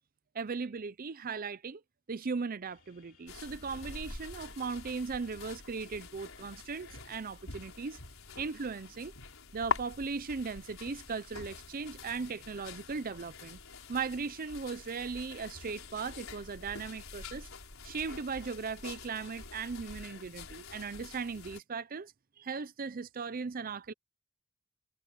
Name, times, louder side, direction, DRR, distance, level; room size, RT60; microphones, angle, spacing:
voice 1, 0.3-1.8 2.1-8.0 8.4-9.1 9.5-13.6 13.9-17.5 17.8-22.1 22.4-23.9, right 5 dB, 45° right, 0.6 m, -38 dB
sound 1, 2.7-20.2, left 4 dB, 70° left, 3.8 m, -66 dB
sound 2, 3.3-21.6, left 4 dB, 85° left, 4.5 m, -45 dB
head